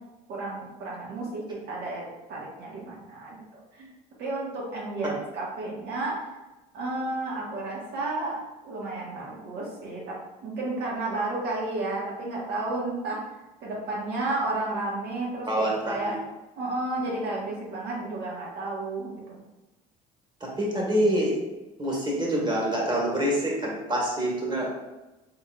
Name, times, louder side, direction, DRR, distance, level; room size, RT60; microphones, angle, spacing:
voice 1, 0.3-3.4 3.7-3.9 4.2-6.1 6.7-10.1 10.4-13.2 13.6-16.1 16.6-19.4, right 2 dB, 70° right, -4 dB, 1.4 m, -32 dB
voice 2, 15.5-16.2 20.4-21.4 21.8-24.7, right 1 dB, 25° right, -2 dB, 1.4 m, -26 dB
3.8 x 3.6 x 2.4 m, 1.1 s
supercardioid pair, 70°, 18 cm